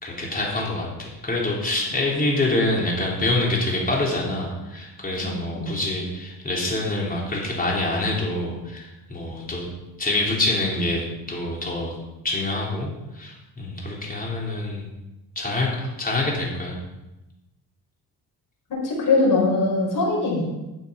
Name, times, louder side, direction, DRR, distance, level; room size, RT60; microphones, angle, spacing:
voice 1, 0.0-9.7 10.0-12.0 12.2-14.9 15.4-16.8, left 2 dB, 25° left, -3 dB, 3.6 m, -26 dB
voice 2, 5.2-5.7 18.7-20.5, left 3 dB, 60° left, -3 dB, 4.9 m, -22 dB
12.5 x 7.1 x 5.9 m, 1.0 s
cardioid pair, 125°, 36 cm